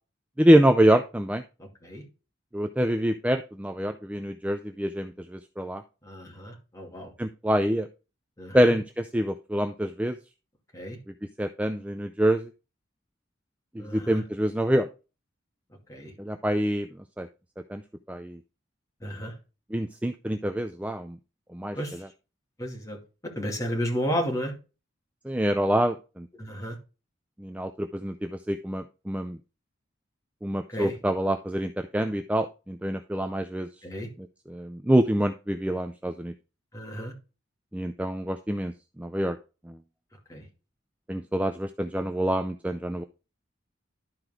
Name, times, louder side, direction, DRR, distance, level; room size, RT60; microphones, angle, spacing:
voice 1, 0.4-1.4 2.5-5.8 7.2-7.9 8.5-10.2 11.4-12.5 13.9-14.9 16.2-16.9 17.2-17.3 17.7-17.8 18.1-18.4 19.7-21.2 21.5-22.1 25.3-26.3 27.4-29.4 30.4-33.7 34.5-36.3 37.7-38.7 39.0-39.4 41.1-43.0, right 1 dB, 5° right, 0.4 m, -26 dB
voice 2, 1.6-2.0 6.0-7.1 8.4-8.7 10.7-11.0 13.8-14.2 15.9-16.1 19.0-19.3 21.7-22.0 22.6-23.0 23.4-24.5 26.4-26.8 30.7-30.9 33.8-34.1 36.7-37.1 40.3-40.4, equal, 15° left, 2.5 m, -32 dB
12.0 x 4.6 x 3.7 m
head